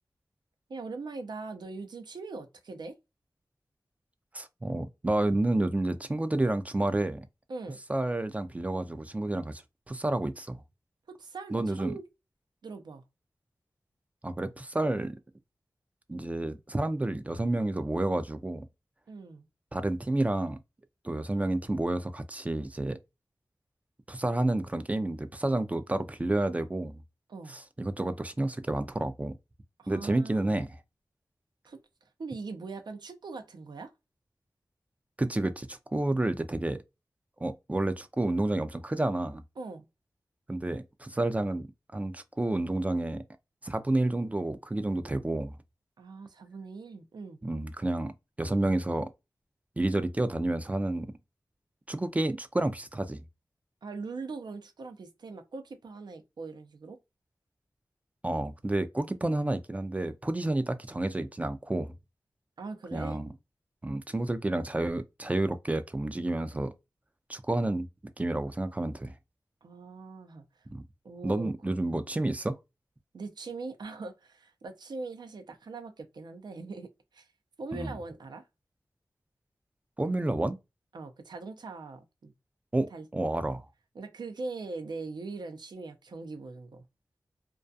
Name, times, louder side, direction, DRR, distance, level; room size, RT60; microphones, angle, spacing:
voice 1, 0.7-2.9 7.5-7.8 11.1-12.0 12.6-13.0 19.1-19.5 27.3-27.6 29.8-30.6 31.6-31.8 32.2-33.9 39.6-39.9 46.0-47.4 53.8-57.0 62.6-63.4 69.6-70.7 71.0-71.5 73.1-77.3 77.6-78.4 80.9-82.3 82.9-83.1 83.9-86.8, right 3 dB, 75° right, 0.5 m, -41 dB
voice 2, 4.3-7.3 7.9-9.6 9.9-10.6 11.5-11.9 14.2-15.2 16.1-18.7 19.7-20.6 21.0-23.0 24.1-27.0 27.8-29.4 29.9-30.7 35.2-36.8 37.4-39.4 40.5-41.7 41.9-43.2 43.6-45.5 47.4-48.1 48.4-49.1 49.8-51.1 51.9-53.2 58.2-61.9 62.9-63.3 63.8-66.7 67.3-67.9 68.2-69.1 70.7-70.8 71.2-72.6 77.7-77.9 80.0-80.6 82.7-83.7, right 2 dB, 20° right, 0.3 m, -30 dB
2.3 x 2.3 x 2.5 m
wide cardioid pair, 75°, 7 cm